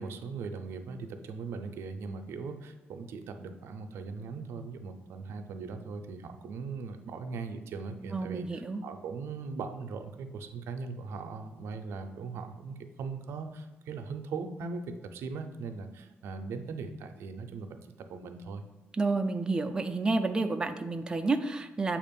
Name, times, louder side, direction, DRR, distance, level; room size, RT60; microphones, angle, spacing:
voice 1, 0.0-18.6, right 4 dB, 85° right, 6 dB, 0.5 m, -39 dB
voice 2, 8.1-8.8 19.0-22.0, right 3 dB, 20° right, 6 dB, 0.4 m, -30 dB
7.2 x 2.5 x 5.2 m, 1.0 s
cardioid pair, 110°, 4 cm